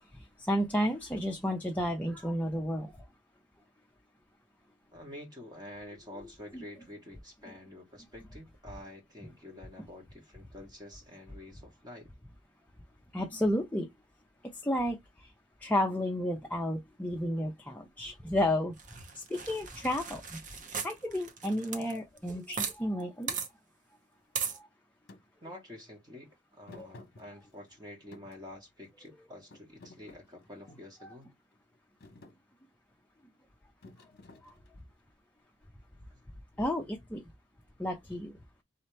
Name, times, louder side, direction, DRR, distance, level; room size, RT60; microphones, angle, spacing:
voice 1, 0.5-2.9 6.5-6.6 13.1-13.9 14.6-15.0 15.6-18.7 19.3-20.4 20.8-23.3 26.8-26.9 31.0-31.1 34.4-34.5 36.6-37.2 37.8-38.3, left 1 dB, 10° left, 0.5 m, -31 dB
voice 2, 4.9-12.1 25.4-31.3 36.1-36.2, left 1 dB, 25° right, 1.1 m, -48 dB
sound 1, 18.8-22.7 23.0-23.1 23.3-23.5 24.3-24.6, right 6 dB, 45° right, 0.7 m, -37 dB
Thump thud, 25.1-25.2 26.7-27.7 28.1-29.1 29.5-31.0 31.5-31.7 32.0-32.4 33.8-34.9, left 2 dB, 55° left, 0.9 m, -53 dB
4.0 x 2.8 x 3.2 m
head